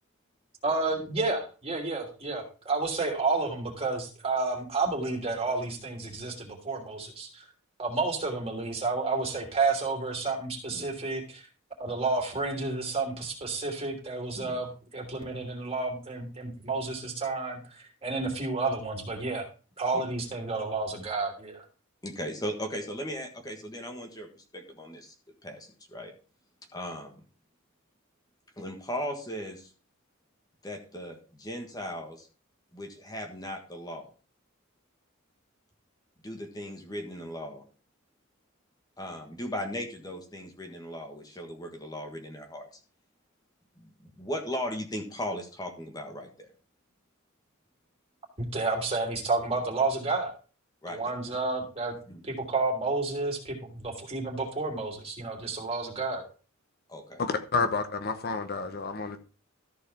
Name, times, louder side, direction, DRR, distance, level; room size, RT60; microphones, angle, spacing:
voice 1, 0.6-7.4 7.8-11.4 11.8-19.4 19.8-21.6 48.4-50.3 50.9-52.0 52.2-56.2, right 3 dB, 30° right, 3.1 m, -30 dB
voice 2, 22.0-25.1 25.4-26.1 26.7-27.2 28.6-29.7 30.6-32.3 32.7-34.1 36.2-37.6 39.0-42.7 43.8-46.5 50.8-51.0 52.1-52.2 56.9-57.2, equal, 20° left, 1.5 m, -37 dB
voice 3, 57.2-59.2, left 4 dB, 45° left, 0.9 m, -29 dB
13.5 x 4.7 x 5.7 m
head